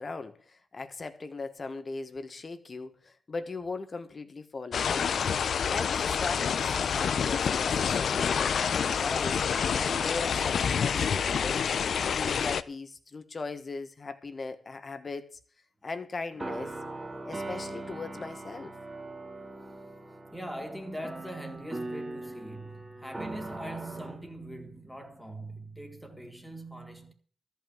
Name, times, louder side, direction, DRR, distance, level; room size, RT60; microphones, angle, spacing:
voice 1, 0.0-5.2 5.7-11.7 12.2-15.4 15.8-16.8 17.2-18.8, left 3 dB, 35° left, 1.6 m, -39 dB
sound 1, 4.7-12.6, left 7 dB, 60° left, 0.6 m, -27 dB
sound 2, 16.3-24.8, right 2 dB, 15° right, 2.2 m, -40 dB
voice 2, 20.3-27.1, right 1 dB, ahead, 2.5 m, -42 dB
14.0 x 5.9 x 9.1 m
cardioid pair, 100°, 0 cm